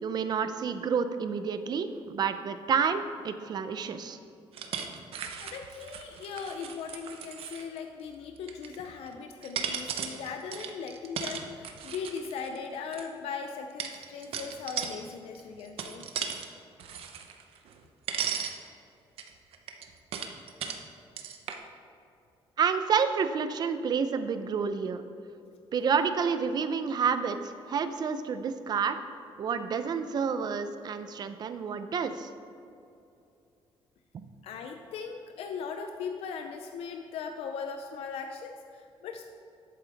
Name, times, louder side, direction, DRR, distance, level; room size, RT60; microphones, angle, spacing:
voice 1, 0.0-4.2 22.6-25.0 25.7-29.0 29.4-32.3, right 6 dB, 45° right, 10 dB, 0.5 m, -29 dB
sound 1, 4.5-7.8 8.4-9.1 9.4-13.1 13.8-15.0 15.3-16.5 16.8-17.8 18.1-18.6 19.2-20.8 21.2-21.6, right 7 dB, 70° right, 0.8 m, -36 dB
voice 2, 5.4-16.1 34.4-39.3, left 5 dB, 80° left, 5 dB, 0.6 m, -39 dB
11.0 x 8.5 x 3.4 m, 2.6 s
cardioid pair, 150°, 10 cm